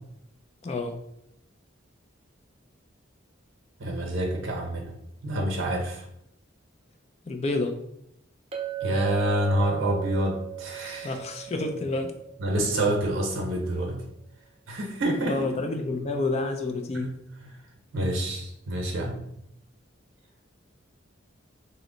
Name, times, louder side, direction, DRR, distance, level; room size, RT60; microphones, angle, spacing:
voice 1, 0.6-1.0 7.3-7.8 11.0-12.1 15.2-17.2, left 2 dB, 35° left, 5 dB, 0.3 m, -29 dB
voice 2, 3.8-4.9 5.2-6.0 8.8-11.1 12.4-14.0 14.7-15.5 16.9-17.1 17.9-19.2, right 1 dB, 80° right, 0 dB, 0.7 m, -27 dB
Chink clink, 8.5-13.0, right 12 dB, 30° right, 0.5 m, -36 dB
3.0 x 2.1 x 3.8 m, 0.76 s
head